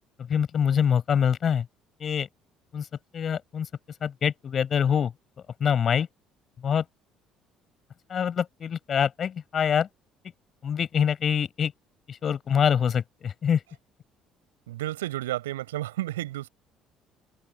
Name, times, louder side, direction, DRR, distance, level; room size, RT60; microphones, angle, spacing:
voice 1, 0.3-1.7 2.0-2.3 2.7-2.9 3.1-3.7 4.0-5.1 5.6-6.1 6.6-6.8 8.1-9.9 10.6-11.7 12.1-13.6, left 8 dB, 40° left, 7.8 m, -25 dB
voice 2, 14.7-16.5, right 15 dB, 75° right, 5.9 m, -31 dB
figure-of-eight pair, 55°, 0 cm